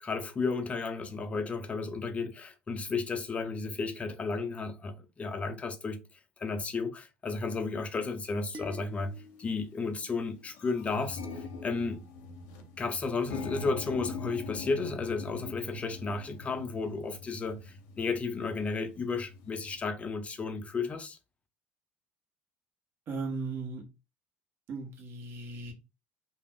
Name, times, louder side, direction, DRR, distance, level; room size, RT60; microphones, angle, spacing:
voice 1, 0.0-6.0 6.4-9.1 9.4-12.0 12.8-21.2, left 4 dB, 25° left, 0.5 m, -33 dB
sound 1, 8.2-8.3 9.1-9.3 9.7-9.8 10.1-19.8, left 3 dB, 85° left, 0.6 m, -42 dB
sound 2, 8.5-11.0, left 3 dB, 25° right, 0.4 m, -50 dB
voice 2, 23.1-23.9 24.7-25.7, right 3 dB, 50° right, 1.0 m, -37 dB
2.4 x 2.0 x 3.5 m
supercardioid pair, 105°, 5 cm